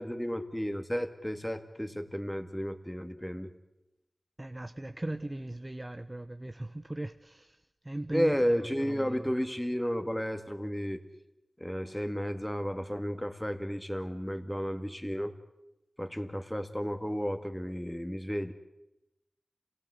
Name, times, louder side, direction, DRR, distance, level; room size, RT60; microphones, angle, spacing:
voice 1, 0.0-3.5 8.1-11.0 11.6-15.3 16.0-18.5, equal, 5° left, 8 dB, 2.1 m, -32 dB
voice 2, 4.4-9.3, right 1 dB, 30° right, 8 dB, 0.9 m, -38 dB
27.5 x 18.0 x 8.1 m, 0.93 s
wide cardioid pair, 50°, 0 cm